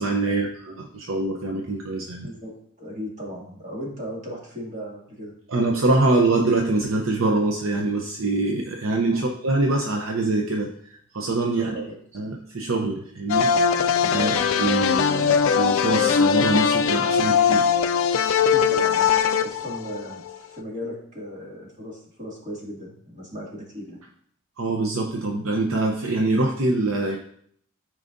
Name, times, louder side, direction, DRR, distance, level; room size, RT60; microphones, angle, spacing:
voice 1, 0.0-2.3 5.5-11.8 12.1-13.5 14.0-14.3 14.6-17.7 18.1-18.4 24.6-27.2, right 2 dB, 65° right, 1 dB, 0.7 m, -24 dB
voice 2, 2.2-5.3 9.1-9.2 11.6-11.9 14.1-14.4 18.4-19.1 19.4-24.0, equal, 35° right, -4 dB, 2.3 m, -36 dB
sound 1, 13.3-20.3, left 7 dB, 65° left, 0.4 m, -21 dB
13.0 x 4.9 x 2.7 m, 0.65 s
head